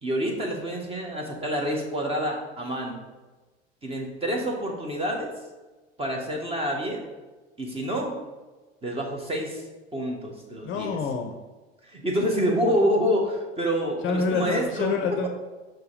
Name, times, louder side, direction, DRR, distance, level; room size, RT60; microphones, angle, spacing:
voice 1, 0.0-3.0 3.8-5.3 6.0-7.1 7.6-8.2 8.8-9.6 9.9-11.0 11.8-14.9, equal, 15° right, 0 dB, 1.8 m, -27 dB
voice 2, 10.6-11.3 14.0-15.3, left 5 dB, 35° left, 5 dB, 0.8 m, -27 dB
6.1 x 4.7 x 5.0 m, 1.2 s
figure-of-eight pair, 80°, 33 cm